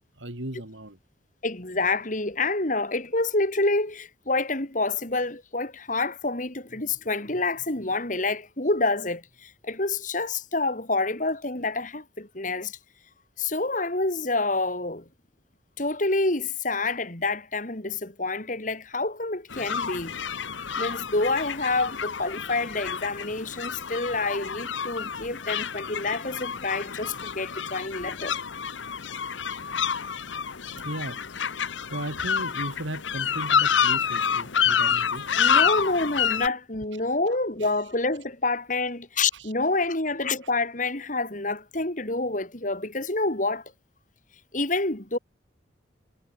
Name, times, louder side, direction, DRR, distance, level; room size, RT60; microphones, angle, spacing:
voice 1, 0.2-1.0 30.8-31.2 31.9-35.4 36.9-37.0 37.3-37.9 39.3-39.5 40.4-40.5, right 1 dB, 85° right, 5.1 m, -37 dB
voice 2, 1.4-12.8 13.4-15.0 15.8-20.1 20.8-28.4 35.4-43.6 44.5-45.2, left 3 dB, 40° left, 3.0 m, -28 dB
sound 1, 19.5-36.5, left 7 dB, 80° left, 1.1 m, -28 dB
head